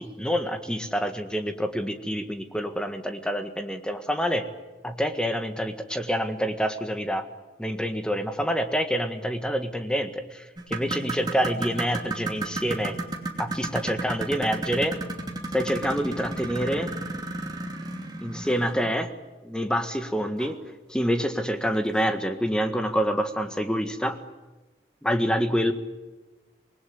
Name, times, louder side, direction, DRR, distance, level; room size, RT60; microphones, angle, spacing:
voice 1, 0.0-4.5 4.8-7.2 7.6-13.0 13.4-14.9 15.5-16.9 18.2-19.1 19.4-20.6 20.9-24.2 25.0-25.7, equal, 5° left, 7 dB, 1.6 m, -27 dB
sound 1, 10.6-19.0 20.4-20.5 21.0-21.1 21.7-21.8, right 2 dB, 20° right, 2.7 m, -33 dB
26.0 x 20.5 x 9.5 m, 1.2 s
head